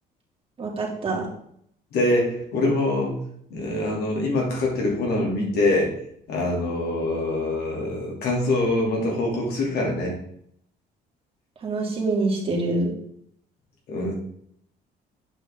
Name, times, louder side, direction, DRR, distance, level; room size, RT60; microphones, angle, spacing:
voice 1, 0.6-1.3 11.6-12.9, right 2 dB, 35° right, -2 dB, 2.3 m, -25 dB
voice 2, 1.9-5.9 6.3-10.1 13.9-14.2, left 2 dB, 75° left, -2 dB, 2.9 m, -24 dB
8.7 x 5.4 x 3.7 m, 0.68 s
cardioid pair, 110°, 17 cm